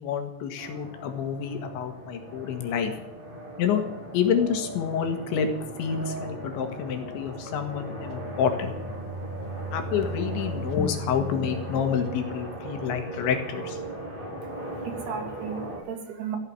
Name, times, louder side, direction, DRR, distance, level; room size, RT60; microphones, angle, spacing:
voice 1, 0.0-2.9 3.6-3.8 4.1-5.5 5.8-8.7 9.7-13.8, left 7 dB, 80° left, 5 dB, 4.2 m, -28 dB
sound 1, 0.6-15.8, right 1 dB, 10° right, 4.4 m, -38 dB
sound 2, 7.4-13.0, right 2 dB, 80° right, 1.6 m, -38 dB
voice 2, 14.4-16.4, right 7 dB, 65° right, 3 dB, 4.2 m, -35 dB
16.0 x 8.3 x 9.8 m, 0.94 s
omnidirectional pair, 5.2 m